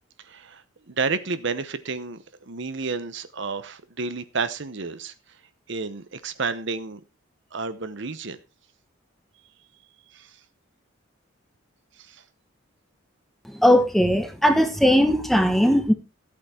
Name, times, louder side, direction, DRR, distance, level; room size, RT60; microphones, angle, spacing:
voice 1, 0.2-5.1 5.7-7.0 7.5-8.4 10.1-10.3 12.0-12.2, right 4 dB, 60° right, 12 dB, 0.9 m, -31 dB
voice 2, 13.5-15.9, equal, ahead, 8 dB, 1.3 m, -19 dB
14.0 x 8.5 x 4.4 m, 0.29 s
head